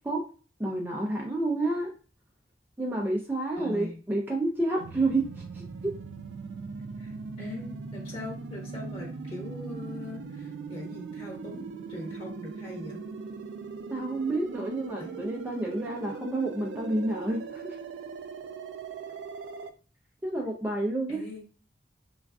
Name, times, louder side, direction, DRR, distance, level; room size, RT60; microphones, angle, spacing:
voice 1, 0.6-1.9 2.8-5.3 5.5-6.0 13.9-17.8 20.2-21.2, right 2 dB, 10° right, -1 dB, 0.4 m, -29 dB
voice 2, 3.6-4.0 7.0-13.0 15.0-15.2 21.1-21.4, left 1 dB, 35° left, -2 dB, 0.9 m, -41 dB
sound 1, 4.8-19.7, right 4 dB, 85° right, 0.3 m, -40 dB
3.5 x 2.3 x 2.3 m, 0.36 s
head